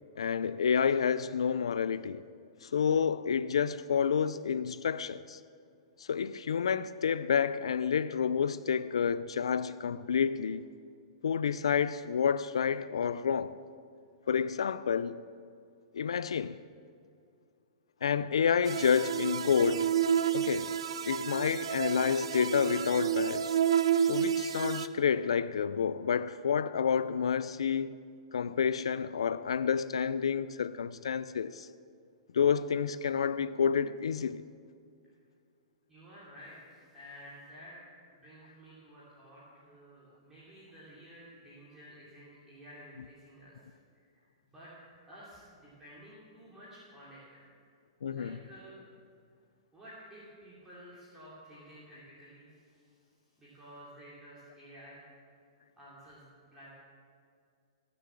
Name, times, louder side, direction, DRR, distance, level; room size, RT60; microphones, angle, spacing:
voice 1, 0.2-2.2 2.6-5.4 6.0-10.6 11.2-13.6 14.3-15.2 15.9-16.6 18.0-19.9 20.3-20.7 21.1-23.6 24.0-28.0 28.3-31.7 32.3-34.4 48.0-48.4, left 7 dB, 90° left, 0.4 m, -29 dB
sound 1, 18.6-24.9, right 9 dB, 80° right, 0.6 m, -30 dB
voice 2, 35.9-37.8 38.1-47.5 48.1-48.8 49.7-55.0 55.8-56.7, equal, 10° right, 3.4 m, -52 dB
16.5 x 6.9 x 7.6 m
hypercardioid pair, 135°, 3 cm